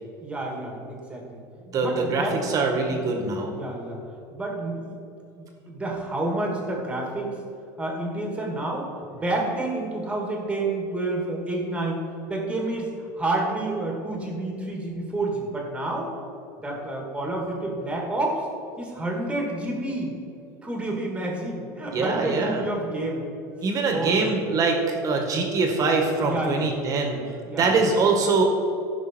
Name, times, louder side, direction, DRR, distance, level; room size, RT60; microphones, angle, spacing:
voice 1, 0.2-1.4 1.8-3.0 3.4-4.0 4.3-4.9 5.4-7.4 7.8-12.0 12.3-12.9 13.2-16.1 16.6-18.5 18.8-20.1 20.6-23.2 23.9-24.5 26.2-26.7 27.5-27.7, right 2 dB, 10° right, -1 dB, 2.3 m, -29 dB
voice 2, 1.7-3.5 21.9-22.6 23.6-28.4, right 4 dB, 35° right, 3 dB, 1.9 m, -23 dB
15.5 x 6.0 x 4.6 m, 2.6 s
supercardioid pair, 130°, 10 cm